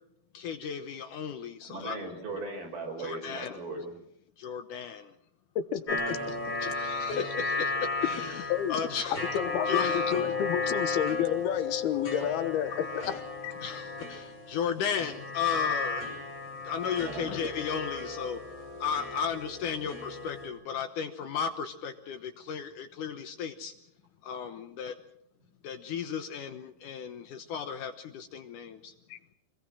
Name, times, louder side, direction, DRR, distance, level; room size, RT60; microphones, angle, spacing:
voice 1, 0.3-2.0 3.0-3.6 4.4-5.1 6.6-8.4 8.7-9.2 9.7-10.0 13.6-16.1 16.7-18.4 18.8-23.7 24.2-25.0 25.6-28.9, left 7 dB, 70° left, 8 dB, 2.2 m, -34 dB
voice 2, 1.7-3.9 12.2-12.3 17.0-17.3, right 2 dB, 70° right, 1 dB, 7.2 m, -38 dB
voice 3, 5.6-6.2 7.1-7.2 8.3-8.7 9.3-13.6 29.1-29.2, left 10 dB, 85° left, 11 dB, 3.0 m, -31 dB
sound 1, 5.9-20.5, left 3 dB, 30° left, 6.7 m, -34 dB
25.0 x 21.0 x 6.2 m, 0.76 s
omnidirectional pair, 4.4 m